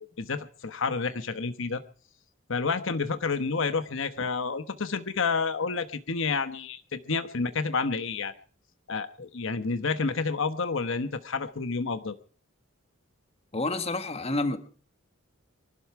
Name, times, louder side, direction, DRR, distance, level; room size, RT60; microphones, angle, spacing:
voice 1, 0.2-1.8 2.5-8.3 8.9-12.2, left 4 dB, 65° left, 10 dB, 1.1 m, -29 dB
voice 2, 13.5-14.6, left 2 dB, 30° left, 10 dB, 1.4 m, -28 dB
24.5 x 12.5 x 4.7 m, 0.40 s
head